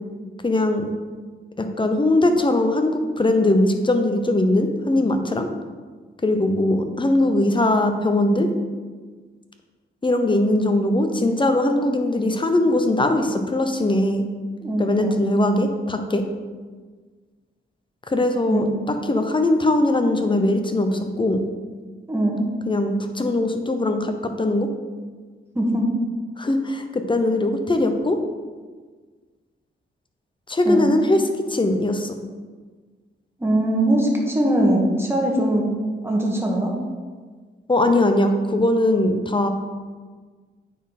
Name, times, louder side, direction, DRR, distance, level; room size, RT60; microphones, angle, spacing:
voice 1, 0.4-0.9 1.6-5.5 6.2-8.5 10.0-14.2 14.8-16.2 18.1-21.4 22.7-24.7 26.4-28.2 30.5-31.2 31.5-32.1 37.7-39.5, left 1 dB, 25° left, 6 dB, 0.8 m, -20 dB
voice 2, 14.6-15.3 18.5-18.8 22.1-22.5 25.5-25.9 30.6-30.9 33.4-35.7 36.0-36.8, right 1 dB, 10° right, -1 dB, 1.5 m, -21 dB
9.1 x 4.3 x 4.3 m, 1.5 s
cardioid pair, 85°, 20 cm